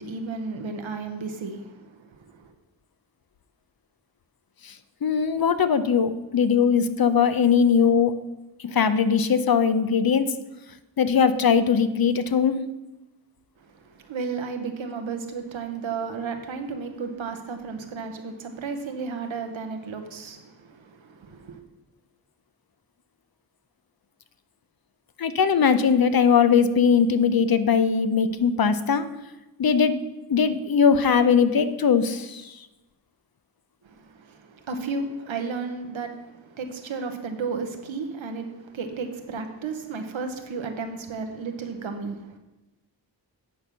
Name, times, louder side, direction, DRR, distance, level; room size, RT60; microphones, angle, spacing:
voice 1, 0.0-2.5 13.9-21.6 33.8-42.4, right 4 dB, 90° right, 5 dB, 1.0 m, -33 dB
voice 2, 5.0-8.1 8.6-10.3 11.0-12.6 25.2-29.1 29.6-30.0 30.3-32.4, left 6 dB, 50° left, 12 dB, 0.7 m, -20 dB
8.7 x 4.5 x 6.8 m, 1.1 s
cardioid pair, 50°, 45 cm